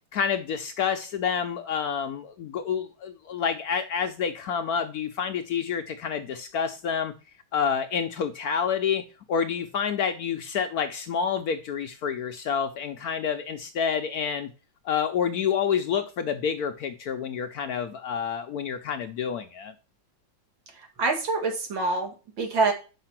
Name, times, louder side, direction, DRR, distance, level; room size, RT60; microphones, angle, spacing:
voice 1, 0.1-7.1 7.5-9.0 9.3-14.5 14.8-19.7, left 7 dB, 70° left, 0.9 m, -28 dB
voice 2, 20.7-22.7, right 3 dB, 85° right, 2.6 m, -26 dB
5.7 x 5.5 x 5.8 m
omnidirectional pair, 2.1 m